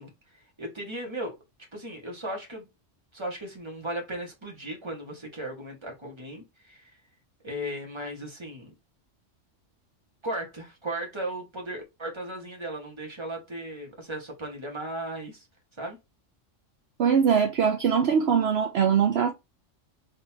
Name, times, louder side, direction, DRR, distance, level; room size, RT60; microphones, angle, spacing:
voice 1, 0.0-1.4 1.7-2.7 3.1-7.0 7.4-8.7 10.2-15.5 15.8-16.0, right 1 dB, 20° right, 1.6 m, -36 dB
voice 2, 17.0-19.3, right 7 dB, 60° right, 0.9 m, -22 dB
4.0 x 3.7 x 2.8 m
omnidirectional pair, 1.3 m